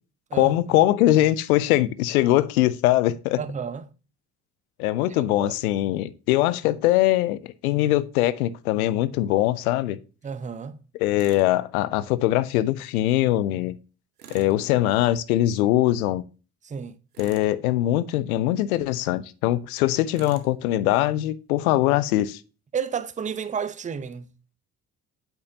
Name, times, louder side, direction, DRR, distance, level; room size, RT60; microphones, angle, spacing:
voice 1, 0.3-3.4 4.8-10.0 10.9-13.7 14.3-16.2 17.2-22.4, left 15 dB, 75° left, 0.6 m, -22 dB
voice 2, 3.4-3.8 5.4-5.5 10.2-10.8 16.6-17.0 22.7-24.3, right 7 dB, 15° right, 0.6 m, -31 dB
Tools, 11.2-11.5 14.2-14.6 17.1-17.6 20.1-20.5, right 7 dB, 85° right, 0.8 m, -46 dB
8.3 x 4.5 x 2.7 m
figure-of-eight pair, 50°, 44 cm